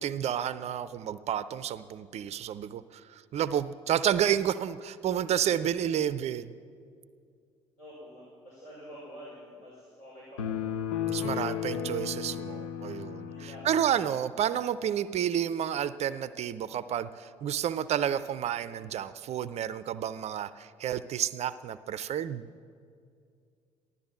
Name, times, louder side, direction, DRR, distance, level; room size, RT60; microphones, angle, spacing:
voice 1, 0.0-2.8 3.3-6.5 11.1-22.4, right 10 dB, 45° right, 15 dB, 0.5 m, -30 dB
voice 2, 7.8-10.5 13.3-14.0, equal, 60° left, -7 dB, 5.1 m, -47 dB
sound 1, 10.4-13.9, left 9 dB, 75° left, 0.7 m, -34 dB
15.0 x 12.0 x 7.3 m, 2.3 s
figure-of-eight pair, 50°, 15 cm